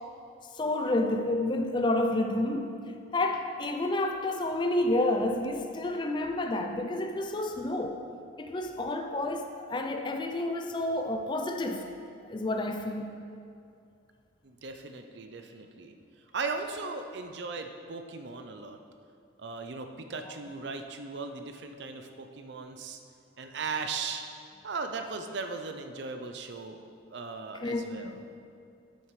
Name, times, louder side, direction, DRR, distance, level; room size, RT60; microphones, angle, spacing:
voice 1, 0.5-2.8 3.1-8.0 8.4-11.9 12.2-13.2 27.6-28.1, left 2 dB, 25° left, 5 dB, 0.4 m, -30 dB
voice 2, 14.4-15.9 16.3-18.8 19.4-23.0 23.4-24.2 24.6-26.8 27.1-28.2, right 4 dB, 60° right, 6 dB, 0.5 m, -37 dB
9.0 x 7.0 x 3.2 m, 2.4 s
head